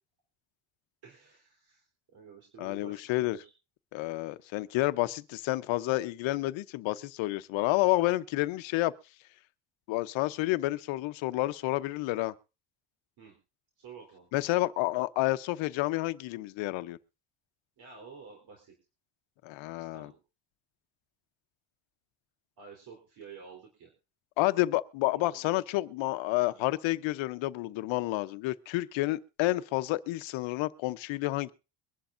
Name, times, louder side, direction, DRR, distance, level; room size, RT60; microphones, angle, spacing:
voice 1, 1.0-3.5 13.2-13.3 13.8-14.3 17.8-18.7 19.8-20.2 22.6-23.9 25.1-25.5, right 5 dB, 50° right, 3.8 m, -50 dB
voice 2, 2.6-3.4 3.9-8.9 9.9-12.3 14.3-17.0 19.4-20.1 24.4-31.5, left 18 dB, 80° left, 0.9 m, -30 dB
23.0 x 11.5 x 2.6 m
cardioid pair, 170°, 46 cm